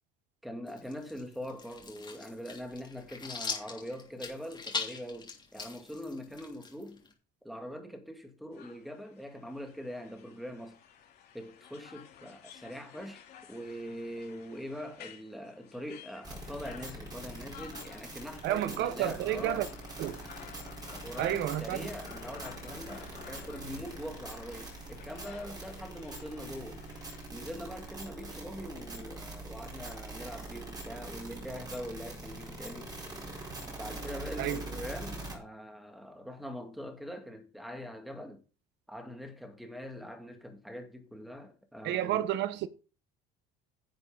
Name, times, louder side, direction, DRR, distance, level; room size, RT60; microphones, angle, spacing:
voice 1, 0.4-7.0 7.4-10.8 11.3-19.7 20.9-26.8 27.3-32.9 33.7-38.4 38.9-42.3, equal, ahead, 2.1 m, -43 dB
sound 1, 0.7-7.1, left 4 dB, 20° left, 3.0 m, -41 dB
sound 2, 8.5-27.3, left 9 dB, 50° left, 3.4 m, -53 dB
sound 3, 16.2-35.4, right 2 dB, 20° right, 4.5 m, -43 dB
voice 2, 18.4-19.7 20.0-20.2 21.2-21.9 34.4-34.6 41.8-42.7, right 13 dB, 60° right, 1.0 m, -30 dB
11.0 x 7.8 x 3.9 m
cardioid pair, 125°, 20 cm